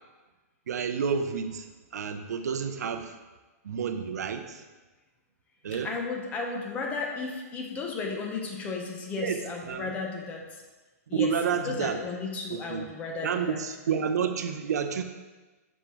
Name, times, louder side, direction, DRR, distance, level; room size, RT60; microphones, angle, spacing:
voice 1, 0.7-3.1 3.6-4.6 5.6-5.9 9.2-9.9 11.1-12.0 12.5-12.8 13.2-15.0, right 6 dB, 85° right, 7 dB, 0.5 m, -30 dB
voice 2, 5.7-10.4 11.1-11.3 11.6-13.6 13.9-14.0, left 4 dB, 15° left, 1 dB, 0.7 m, -34 dB
6.1 x 5.2 x 3.0 m, 1.2 s
hypercardioid pair, 160°, 9 cm